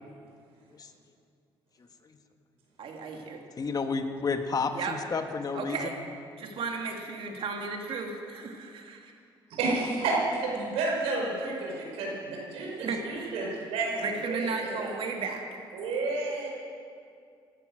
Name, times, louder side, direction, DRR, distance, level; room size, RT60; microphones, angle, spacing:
voice 1, 2.8-3.4 4.7-4.9 5.5-5.9 6.4-9.1 12.8-13.3 14.0-15.4, right 4 dB, 65° right, 2 dB, 2.7 m, -35 dB
voice 2, 3.6-5.8, left 4 dB, 40° left, 6 dB, 1.6 m, -30 dB
voice 3, 9.5-14.9 15.7-16.5, right 3 dB, 85° right, -2 dB, 5.3 m, -31 dB
16.5 x 13.0 x 6.3 m, 2.3 s
supercardioid pair, 75°, 10 cm